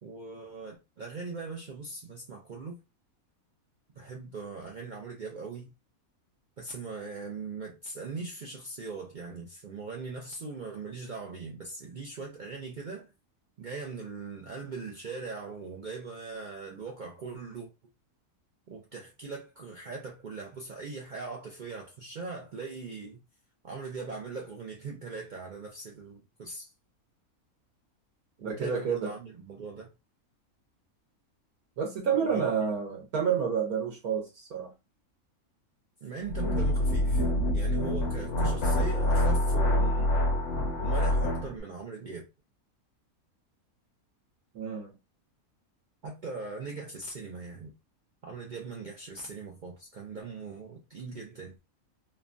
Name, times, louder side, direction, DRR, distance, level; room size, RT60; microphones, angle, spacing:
voice 1, 0.0-2.8 4.0-5.7 6.6-13.1 13.6-17.7 18.7-23.2 23.6-26.7 28.4-29.9 32.1-32.4 36.0-40.2 40.8-42.3 46.0-47.7 48.2-51.6, right 4 dB, 70° right, 0.4 m, -40 dB
voice 2, 28.4-29.1 31.8-34.7 44.5-44.9, right 7 dB, 85° right, 1.3 m, -29 dB
sound 1, 36.3-41.5, left 1 dB, 60° left, 0.9 m, -26 dB
3.2 x 2.1 x 2.4 m
omnidirectional pair, 1.5 m